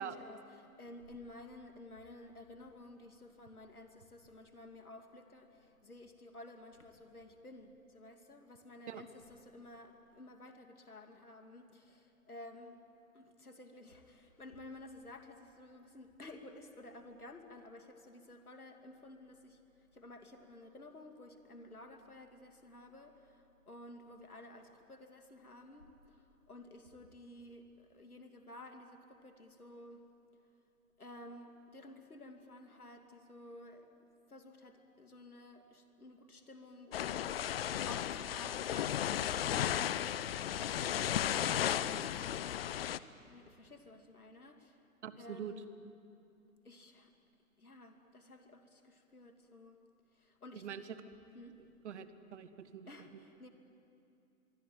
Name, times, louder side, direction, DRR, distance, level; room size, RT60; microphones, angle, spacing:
voice 1, 0.0-12.8 13.1-30.0 31.0-33.9 34.3-39.8 40.6-42.6 43.2-44.9 45.1-45.6 46.6-47.1 47.6-49.8 50.1-50.7 51.3-51.6 52.9-53.5, left 1 dB, 85° left, 5 dB, 2.9 m, -53 dB
sound 1, 36.9-43.0, left 10 dB, 45° left, 0.7 m, -35 dB
voice 2, 45.0-45.5 50.6-50.8 51.8-52.9, right 8 dB, 50° right, 11 dB, 1.7 m, -44 dB
25.0 x 23.5 x 9.3 m, 2.6 s
figure-of-eight pair, 120°, 43 cm